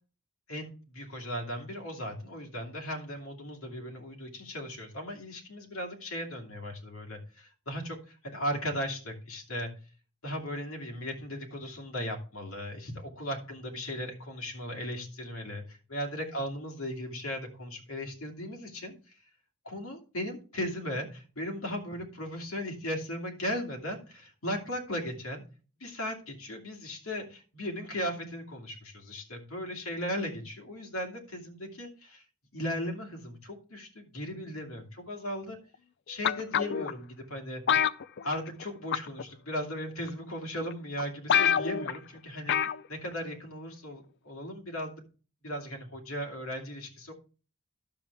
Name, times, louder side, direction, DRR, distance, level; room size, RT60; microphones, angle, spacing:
voice 1, 0.5-9.7 10.2-19.2 19.6-25.4 25.8-32.2 32.5-35.6 36.1-37.6 38.2-44.9 45.4-47.1, equal, 75° left, 2 dB, 2.4 m, -37 dB
sound 1, 36.2-36.9 37.7-38.6 38.9-39.2 40.1-40.2 40.7-40.8 41.0-41.1 41.3-42.0 42.5-42.8 43.1-43.2, left 8 dB, 55° left, 0.5 m, -26 dB
12.0 x 7.0 x 3.4 m, 0.36 s
head